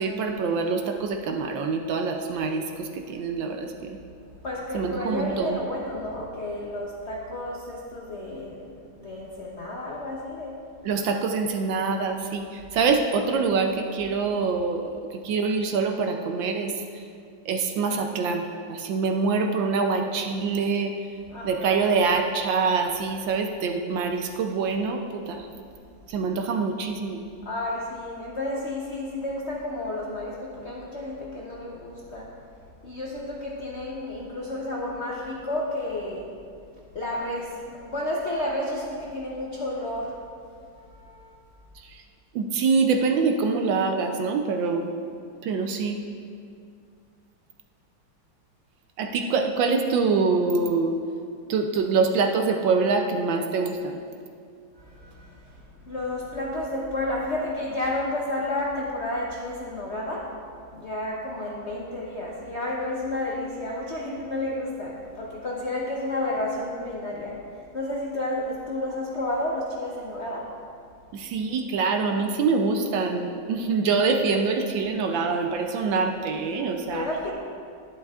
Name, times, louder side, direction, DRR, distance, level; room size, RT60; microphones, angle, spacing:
voice 1, 0.0-4.0 4.7-5.6 10.8-17.0 17.4-20.9 21.4-25.5 26.1-27.2 41.8-42.0 42.3-44.9 45.4-46.0 49.0-51.0 51.5-54.0 71.1-77.1, right 4 dB, 70° right, 4 dB, 1.3 m, -25 dB
voice 2, 4.4-10.6 21.3-21.8 27.4-32.4 32.8-36.3 36.9-40.2 40.7-41.4 54.8-60.3 60.7-70.6 76.9-77.3, left 1 dB, 55° left, -4 dB, 0.7 m, -31 dB
11.5 x 10.5 x 2.4 m, 2.3 s
omnidirectional pair, 2.3 m